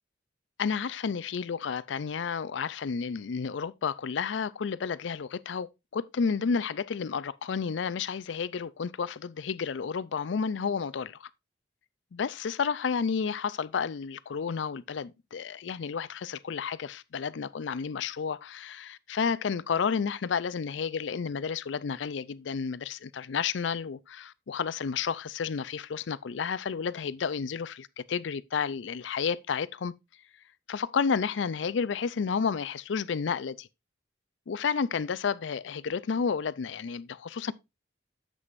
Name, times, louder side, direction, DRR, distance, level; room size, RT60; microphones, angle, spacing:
voice 1, 0.6-11.3 12.1-29.9 30.7-33.7 34.5-37.5, left 6 dB, 80° left, 0.4 m, -31 dB
9.6 x 7.7 x 2.5 m
head